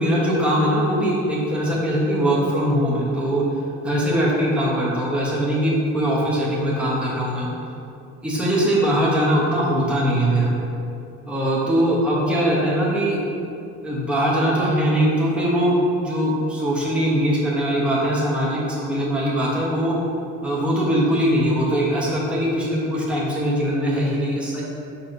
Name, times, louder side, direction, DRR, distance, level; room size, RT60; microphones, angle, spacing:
voice 1, 0.0-3.4 3.8-7.5 8.2-10.5 11.3-13.2 13.8-15.8 16.0-19.9 20.4-24.6, equal, 5° right, -6 dB, 1.0 m, -21 dB
4.7 x 4.2 x 2.6 m, 2.6 s
supercardioid pair, 90°, 29 cm